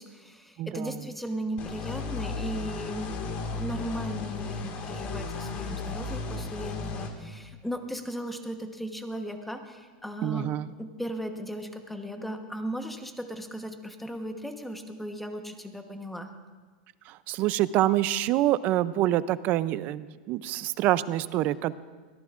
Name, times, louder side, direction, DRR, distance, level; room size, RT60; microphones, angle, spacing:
voice 1, 0.0-10.5 10.8-16.3, equal, 5° left, 5 dB, 1.1 m, -36 dB
voice 2, 0.6-1.0 10.2-10.7 17.1-21.7, right 14 dB, 40° right, 16 dB, 0.5 m, -26 dB
sound 1, 1.6-7.1, left 4 dB, 35° left, 1.9 m, -35 dB
23.0 x 17.5 x 2.5 m, 1.4 s
supercardioid pair, 150°, 4 cm